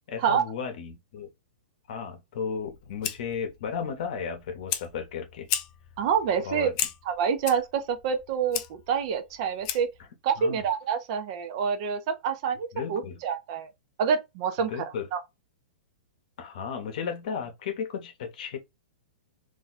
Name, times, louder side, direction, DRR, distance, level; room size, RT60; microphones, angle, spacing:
voice 1, 0.1-1.3 1.9-5.5 6.4-6.7 10.4-10.6 12.7-13.2 14.6-15.1 16.4-18.6, left 6 dB, 50° left, 0.9 m, -34 dB
Fire, 2.6-10.1, left 11 dB, 30° left, 0.3 m, -36 dB
voice 2, 6.0-6.7 7.1-9.9 10.2-13.7 14.0-14.7 15.1-15.2, right 7 dB, 35° right, 0.5 m, -27 dB
2.6 x 2.2 x 4.0 m
hypercardioid pair, 170°, 5 cm